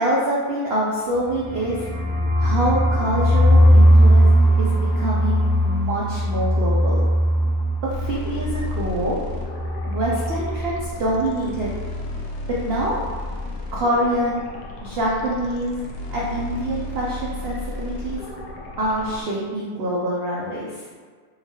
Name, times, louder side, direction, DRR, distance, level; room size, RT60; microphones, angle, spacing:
voice 1, 0.0-1.9 2.4-4.3 4.6-7.0 8.0-9.2 9.9-11.8 12.5-13.0 13.7-14.4 14.8-18.2 18.8-20.8, right 1 dB, 85° right, -5 dB, 0.5 m, -25 dB
sound 1, 1.1-10.9 11.1-11.2 11.5-12.0, equal, 60° left, 1.3 m, -19 dB
sound 2, 7.9-19.2, left 1 dB, 80° left, 1.1 m, -34 dB
3.7 x 2.2 x 2.9 m, 1.5 s
omnidirectional pair, 1.7 m